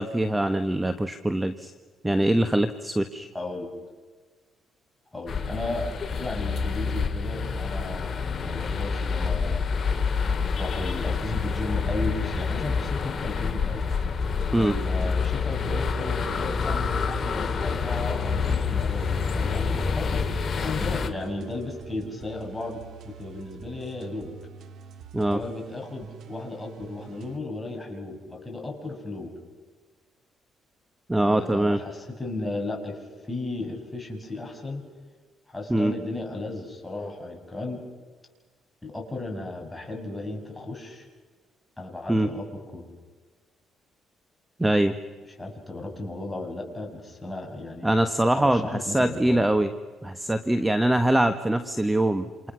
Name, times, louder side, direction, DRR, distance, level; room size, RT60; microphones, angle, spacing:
voice 1, 0.0-1.7 2.0-3.3 14.5-14.7 25.1-25.4 31.1-31.8 35.7-35.9 42.1-42.3 44.6-44.9 47.8-49.7 50.0-52.5, right 1 dB, 10° right, 9 dB, 1.4 m, -23 dB
voice 2, 3.3-3.7 5.1-9.7 10.6-13.8 14.5-20.3 20.6-24.3 25.3-29.3 31.2-34.9 35.5-37.8 38.8-41.1 41.8-42.9 45.4-47.9 48.3-49.5, left 2 dB, 10° left, 1 dB, 7.0 m, -35 dB
sound 1, 5.3-21.1, left 5 dB, 45° left, 2.6 m, -27 dB
sound 2, 13.7-27.4, right 7 dB, 70° right, 1.8 m, -45 dB
28.5 x 28.0 x 6.3 m, 1.4 s
cardioid pair, 90°, 0 cm